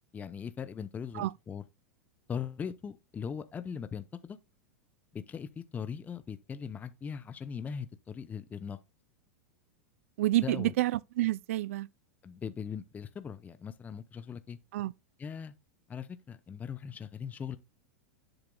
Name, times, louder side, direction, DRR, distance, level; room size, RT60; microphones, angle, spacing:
voice 1, 0.1-1.6 2.3-4.4 5.1-8.8 10.4-10.7 12.2-14.6 15.2-15.5 15.9-17.6, left 7 dB, 20° left, 0.7 m, -40 dB
voice 2, 10.2-11.9 14.7-14.9, right 16 dB, 70° right, 0.3 m, -28 dB
10.5 x 7.9 x 2.2 m
hypercardioid pair, 105°, 8 cm